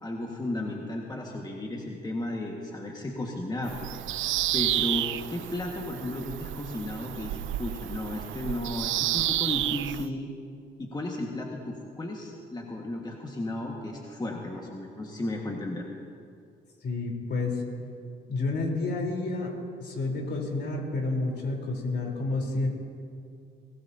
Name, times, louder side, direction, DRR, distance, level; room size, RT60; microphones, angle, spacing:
voice 1, 0.0-10.3 10.8-15.9, left 1 dB, 20° left, -1 dB, 1.8 m, -34 dB
Bird vocalization bird call bird song, 3.7-10.1, right 14 dB, 75° right, 0.5 m, -30 dB
voice 2, 16.8-17.6 18.3-19.5 19.8-22.7, left 3 dB, 60° left, 0 dB, 4.1 m, -30 dB
23.5 x 17.5 x 2.9 m, 2.4 s
cardioid pair, 90°, 20 cm